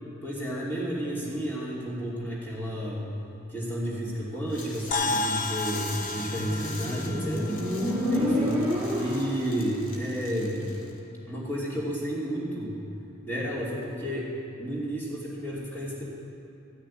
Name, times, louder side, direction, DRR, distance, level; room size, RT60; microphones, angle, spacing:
voice 1, 0.2-3.0 3.5-10.7 11.3-12.7 13.2-14.3 14.6-16.0, equal, 10° left, -7 dB, 2.9 m, -32 dB
sound 1, 4.5-11.0, left 3 dB, 85° left, 1.9 m, -43 dB
sound 2, 4.9-9.5, left 2 dB, 40° left, 0.6 m, -34 dB
Motorcycle, 6.1-9.6, left 1 dB, 10° right, 2.9 m, -29 dB
14.5 x 6.6 x 9.8 m, 2.9 s
head